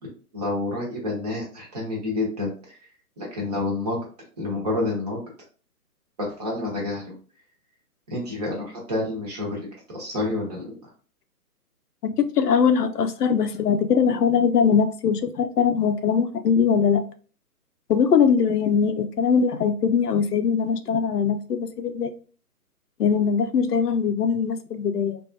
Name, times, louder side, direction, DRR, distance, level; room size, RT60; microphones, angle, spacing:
voice 1, 0.3-2.9 3.2-4.0 4.4-5.2 6.2-7.2 8.1-10.9, left 2 dB, 25° right, 1.1 m, -29 dB
voice 2, 12.0-17.0 17.9-22.1 23.0-25.2, left 6 dB, 80° left, 0.6 m, -21 dB
3.5 x 2.5 x 2.5 m
hypercardioid pair, 160°, 46 cm